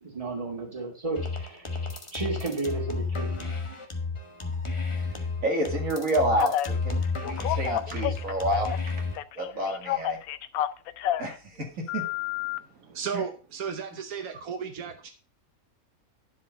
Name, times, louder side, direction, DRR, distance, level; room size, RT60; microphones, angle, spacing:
voice 1, 0.0-3.5, right 3 dB, 25° right, 1 dB, 2.4 m, -33 dB
sound 1, 1.2-9.2, left 4 dB, 25° left, 1.1 m, -31 dB
voice 2, 5.4-8.7 9.4-10.2 11.2-12.0 13.1-13.2, right 1 dB, 65° right, 2 dB, 2.4 m, -29 dB
Telephone, 6.4-6.7 7.2-8.9 9.2-11.3 11.9-12.6, left 12 dB, 85° left, 1.0 m, -30 dB
voice 3, 12.5-15.1, right 6 dB, 85° right, 6 dB, 1.4 m, -35 dB
11.0 x 5.0 x 5.3 m, 0.36 s
omnidirectional pair, 1.5 m